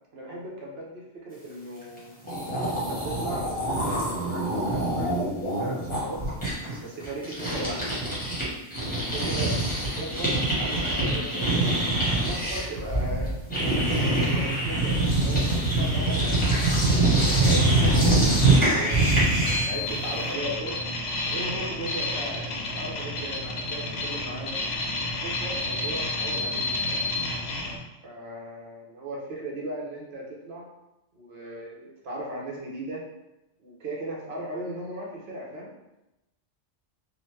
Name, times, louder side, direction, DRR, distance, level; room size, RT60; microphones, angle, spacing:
voice 1, 0.1-2.1 2.8-6.2 6.8-7.8 8.8-11.7 12.1-13.4 13.9-16.6 17.2-19.2 19.6-20.8 21.2-22.4 22.7-24.6 25.2-27.0 28.0-30.7 31.1-33.0 33.6-35.7, right 1 dB, 70° right, -3 dB, 0.9 m, -37 dB
sound 1, 2.0-2.1 2.2-8.4 8.7-19.8, right 2 dB, 10° left, 0.8 m, -24 dB
sound 2, 19.4-27.8, left 2 dB, 75° left, 0.8 m, -30 dB
2.9 x 2.0 x 3.1 m, 0.94 s
omnidirectional pair, 1.1 m